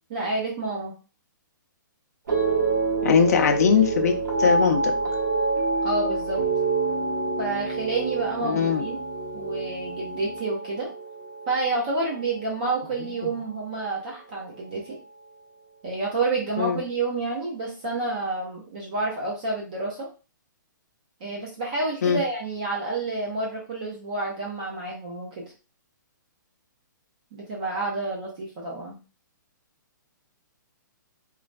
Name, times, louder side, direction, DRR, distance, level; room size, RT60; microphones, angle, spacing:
voice 1, 0.1-0.9 5.8-6.4 7.4-9.0 9.3-10.9 11.5-15.0 15.8-20.1 21.2-25.5 27.3-29.0, right 3 dB, 25° right, -3 dB, 0.5 m, -29 dB
sound 1, 2.3-12.6 12.9-13.5, right 3 dB, 70° right, 1.0 m, -27 dB
voice 2, 3.0-4.1 4.4-4.9 8.4-8.9 13.2-13.3 16.6-16.8 22.0-22.2, left 7 dB, 50° left, 4 dB, 0.5 m, -21 dB
3.1 x 2.2 x 2.4 m, 0.34 s
hypercardioid pair, 175°, 11 cm